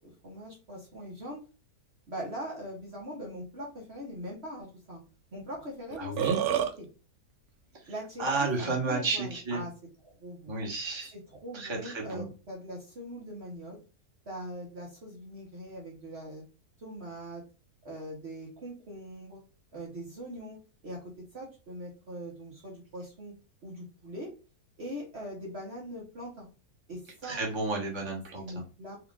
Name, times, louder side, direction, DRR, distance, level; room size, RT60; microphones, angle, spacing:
voice 1, 0.0-1.4 2.1-5.0 5.3-6.4 6.8-6.9 7.9-9.7 10.0-10.5 11.1-13.8 14.3-16.4 16.8-17.4 17.8-19.4 19.7-20.6 20.8-23.3 23.6-24.3 24.8-26.5 26.9-27.4 28.3-29.0, equal, 45° right, -3 dB, 1.3 m, -41 dB
Burping eructation, 5.5-5.6 5.9-6.7, right 10 dB, 70° right, 1.0 m, -28 dB
voice 2, 6.0-6.4 8.2-9.6 10.5-11.1 11.5-12.3 27.2-28.4, right 3 dB, 20° right, -2 dB, 1.2 m, -31 dB
4.8 x 2.5 x 3.7 m, 0.34 s
omnidirectional pair, 1.7 m